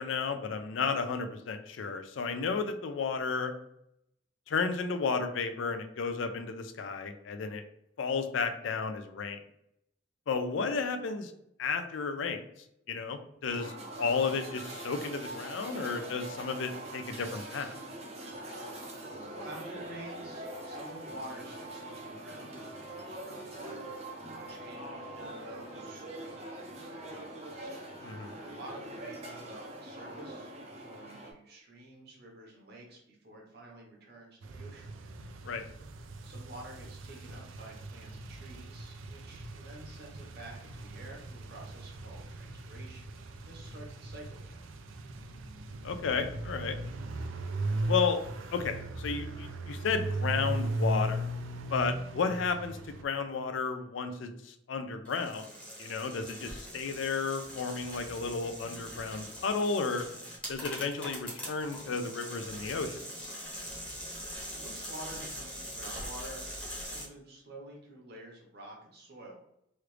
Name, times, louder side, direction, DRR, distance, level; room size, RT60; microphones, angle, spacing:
voice 1, 0.0-3.5 4.5-7.6 8.0-9.4 10.3-11.3 11.6-12.4 12.9-13.7 14.0-17.7 28.0-28.3 35.4-35.6 45.8-46.8 47.9-48.2 48.5-51.3 51.7-55.5 55.8-60.1 60.5-63.3, left 5 dB, 75° left, 8 dB, 0.4 m, -33 dB
sound 1, 13.5-31.3, right 1 dB, 35° right, 0.5 m, -43 dB
voice 2, 19.0-34.9 36.2-44.6 64.5-69.3, right 1 dB, 55° right, -1 dB, 1.0 m, -49 dB
sound 2, 34.4-53.0, right 1 dB, 85° right, 0.4 m, -38 dB
sound 3, 55.1-67.1, equal, 5° left, 0.8 m, -42 dB
3.1 x 2.4 x 3.1 m, 0.76 s
head